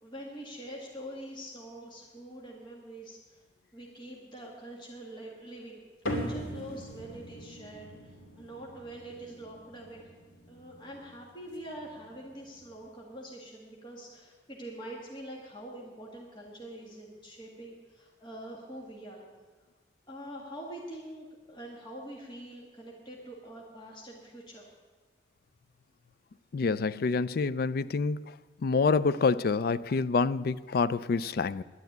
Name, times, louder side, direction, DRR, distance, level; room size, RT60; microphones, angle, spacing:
voice 1, 0.0-3.4 3.7-10.1 10.5-19.3 20.1-24.7, right 1 dB, 25° left, 1.8 m, -45 dB
sound 1, 6.1-12.8, equal, 80° left, 2.7 m, -41 dB
voice 2, 26.5-28.2 28.6-31.6, left 4 dB, 55° left, 0.4 m, -27 dB
11.0 x 9.4 x 9.2 m
head